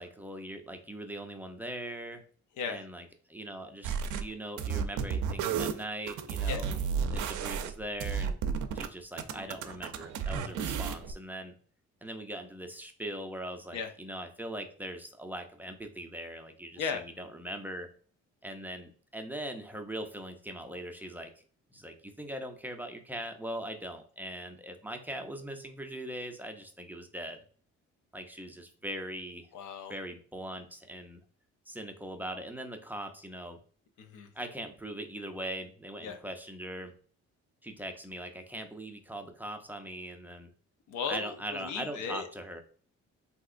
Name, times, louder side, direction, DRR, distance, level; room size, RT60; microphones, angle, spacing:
voice 1, 0.0-2.2 2.7-6.8 7.1-8.4 8.7-11.5 12.0-17.9 18.4-21.4 21.7-27.4 28.1-29.5 29.9-31.2 31.7-33.6 34.3-36.9 37.6-40.5 41.1-42.6, right 1 dB, 5° right, 4 dB, 0.5 m, -41 dB
sound 1, 3.8-4.2 4.6-8.9 9.2-11.1, right 7 dB, 75° right, 0.5 m, -32 dB
voice 2, 29.5-29.9 34.0-34.3 36.0-36.2 40.9-42.3, left 6 dB, 80° left, 6 dB, 0.7 m, -36 dB
3.4 x 2.8 x 2.4 m, 0.43 s
cardioid pair, 90°, 30 cm